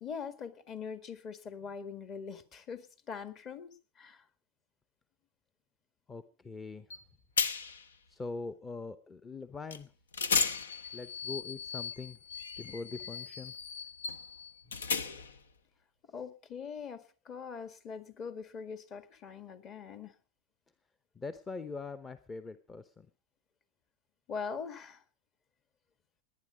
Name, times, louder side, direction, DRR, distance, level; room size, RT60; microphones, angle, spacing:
voice 1, 0.0-4.2 16.1-20.2 24.3-25.0, left 6 dB, 35° left, 11 dB, 1.9 m, -42 dB
voice 2, 6.1-6.9 8.1-9.9 10.9-12.2 12.6-13.5 21.2-23.1, left 4 dB, 20° left, 13 dB, 0.8 m, -42 dB
sound 1, 6.9-7.0 7.4-7.9 9.7-9.8 10.1-15.4, left 5 dB, 85° left, 0.9 m, -35 dB
19.0 x 10.0 x 5.1 m, 0.36 s
hypercardioid pair, 95°, 0 cm